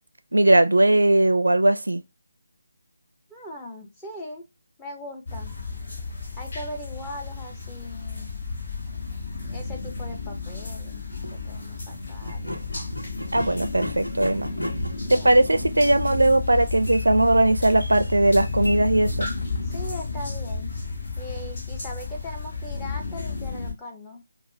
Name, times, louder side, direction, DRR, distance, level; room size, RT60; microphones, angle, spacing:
voice 1, 0.3-2.0 13.3-14.5 15.1-19.3, right 1 dB, 70° right, 0.4 m, -19 dB
voice 2, 3.3-4.4 4.8-5.5 6.4-8.4 9.4-11.0 11.3-12.7 15.1-15.4 19.7-20.7 21.2-24.2, left 1 dB, 10° left, 0.7 m, -39 dB
sound 1, 5.3-23.7, left 4 dB, 40° left, 1.3 m, -32 dB
sound 2, 11.1-11.4 12.2-19.7, equal, 85° left, 0.9 m, -38 dB
5.0 x 2.0 x 2.7 m
figure-of-eight pair, 150°, 0 cm